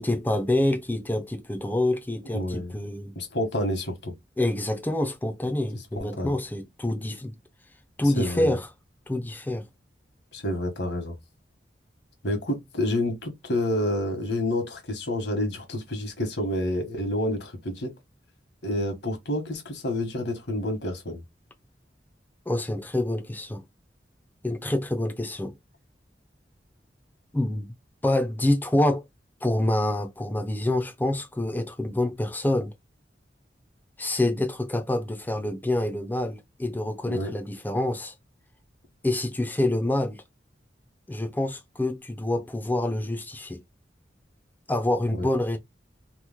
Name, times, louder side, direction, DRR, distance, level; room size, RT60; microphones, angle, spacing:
voice 1, 0.0-3.2 4.4-7.3 8.0-8.7 9.1-9.7 22.5-23.6 24.4-25.5 27.3-27.8 28.0-29.0 29.4-32.7 34.0-38.1 39.0-40.2 41.1-43.6 44.7-45.6, left 1 dB, 10° left, 0.4 m, -27 dB
voice 2, 2.3-2.7 3.1-4.1 6.0-6.3 8.2-8.6 10.3-11.2 12.2-17.9 18.6-21.2 37.1-37.3 45.1-45.3, left 1 dB, 80° left, 1.1 m, -29 dB
3.0 x 2.0 x 3.3 m
head